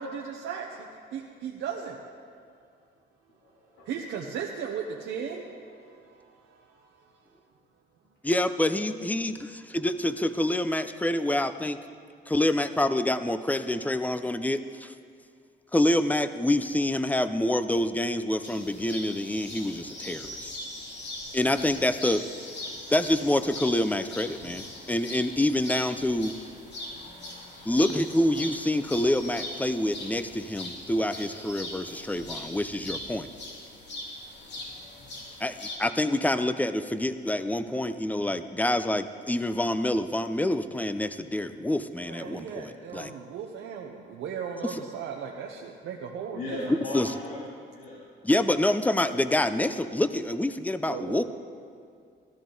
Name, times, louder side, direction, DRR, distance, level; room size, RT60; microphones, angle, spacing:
voice 1, 0.0-2.0 3.9-7.1 42.0-46.8 50.9-51.2, right 7 dB, 75° right, 0 dB, 0.9 m, -37 dB
voice 2, 3.4-3.9 46.3-47.4 47.7-48.0, left 2 dB, 85° left, -7 dB, 2.8 m, -37 dB
voice 3, 8.2-11.8 12.3-14.9 15.7-20.5 21.3-22.2 22.9-26.4 27.7-33.3 35.4-43.1 44.6-44.8 46.9-47.1 48.2-51.2, left 1 dB, 10° left, 11 dB, 0.6 m, -27 dB
sound 1, 18.4-35.8, left 1 dB, 60° left, 2.6 m, -41 dB
13.5 x 13.0 x 3.9 m, 2.3 s
cardioid pair, 90°, 20 cm